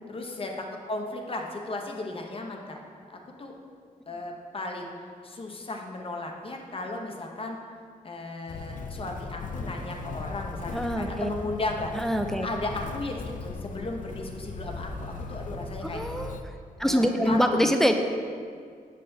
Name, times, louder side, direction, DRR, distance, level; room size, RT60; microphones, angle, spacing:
voice 1, 0.1-2.8 3.1-3.5 4.1-4.9 5.2-7.6 8.0-11.9 12.4-16.0 16.8-17.7, left 2 dB, 40° left, 1 dB, 0.8 m, -35 dB
Motor vehicle (road), 8.5-16.4, left 3 dB, 60° left, 0.4 m, -38 dB
voice 2, 10.7-11.3 11.9-12.5 15.9-16.3 16.8-17.9, equal, 5° left, 5 dB, 0.4 m, -24 dB
6.5 x 5.6 x 2.7 m, 2.1 s
cardioid pair, 80°, 15 cm